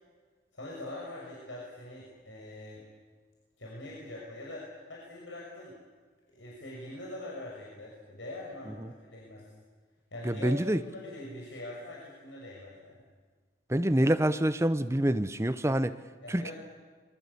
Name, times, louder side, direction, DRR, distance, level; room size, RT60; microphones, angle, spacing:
voice 1, 0.5-2.8 3.6-5.8 6.3-9.5 10.1-13.0 16.2-16.5, left 1 dB, 75° left, -3 dB, 6.3 m, -43 dB
voice 2, 10.2-10.8 13.7-15.9 16.3-16.5, right 1 dB, 15° right, 12 dB, 0.8 m, -26 dB
26.0 x 23.5 x 8.4 m, 1.4 s
head